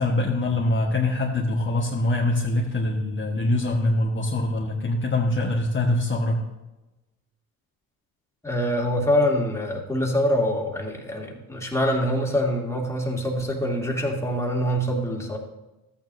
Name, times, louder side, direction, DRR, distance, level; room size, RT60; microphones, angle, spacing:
voice 1, 0.0-6.4, left 2 dB, 30° left, -3 dB, 1.4 m, -24 dB
voice 2, 8.4-15.4, equal, 5° left, -1 dB, 2.3 m, -24 dB
13.5 x 9.2 x 2.7 m, 1.0 s
supercardioid pair, 70°, 41 cm